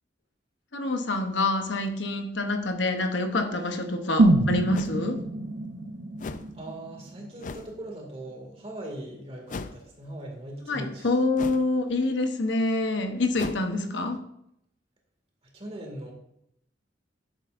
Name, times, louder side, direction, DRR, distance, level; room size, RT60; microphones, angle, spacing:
voice 1, 0.7-5.2 10.7-14.2, left 2 dB, 75° left, 6 dB, 0.9 m, -26 dB
sound 1, 3.7-3.8 4.7-5.0 6.2-6.5 7.4-7.7 9.5-9.9 11.4-11.7 13.4-13.6, left 3 dB, 45° left, 0.4 m, -37 dB
sound 2, 4.2-8.2 8.5-8.6, right 2 dB, 80° right, 0.8 m, -26 dB
voice 2, 6.6-11.1 15.5-16.1, right 1 dB, 30° right, 0 dB, 2.1 m, -40 dB
11.0 x 7.8 x 2.6 m, 0.75 s
head